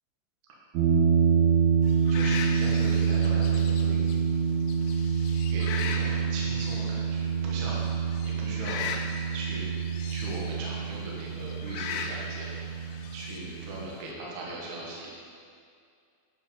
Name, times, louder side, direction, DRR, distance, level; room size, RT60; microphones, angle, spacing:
sound 1, 0.8-13.9, right 6 dB, 75° right, 3.7 m, -27 dB
voice 1, 1.2-1.5 2.1-4.0 5.5-7.9 8.2-8.8 9.3-9.7 10.1-15.1, right 2 dB, 55° right, -4 dB, 2.2 m, -39 dB
sound 2, 1.8-14.1, left 6 dB, 90° left, 3.2 m, -40 dB
10.5 x 7.0 x 5.2 m, 2.3 s
omnidirectional pair, 5.6 m